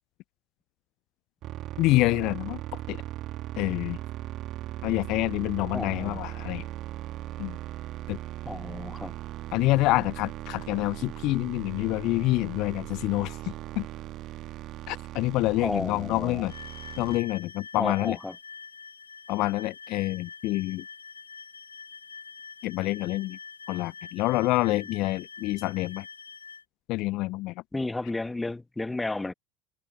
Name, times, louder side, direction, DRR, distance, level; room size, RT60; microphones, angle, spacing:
sound 1, 1.4-17.2, right 14 dB, 45° right, 1.7 m, -38 dB
voice 1, 1.8-3.0 3.6-4.0 4.8-6.7 7.4-7.6 8.1-8.2 9.5-13.9 14.9-16.5 17.0-18.2 19.3-20.8 22.6-23.4 23.7-26.1 26.9-27.5, left 20 dB, 55° left, 0.4 m, -27 dB
voice 2, 5.7-6.2 8.4-9.1 15.6-16.4 17.8-18.3 24.7-24.8 27.7-29.3, left 2 dB, 10° left, 1.1 m, -32 dB
sound 2, 16.5-26.6, left 5 dB, 85° left, 2.1 m, -45 dB
figure-of-eight pair, 75°, 0 cm